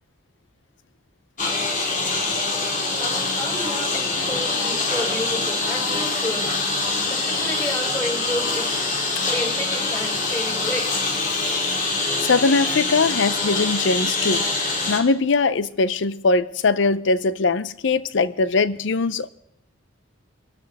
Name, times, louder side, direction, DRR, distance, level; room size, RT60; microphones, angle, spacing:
Engine, 1.4-15.0, left 3 dB, 40° left, 2.0 m, -24 dB
voice 1, 3.0-6.6 7.0-8.9 9.2-11.1, left 1 dB, 20° left, 5.7 m, -31 dB
voice 2, 12.2-14.4 14.9-19.3, left 3 dB, 60° left, 0.5 m, -21 dB
24.0 x 13.0 x 3.5 m
head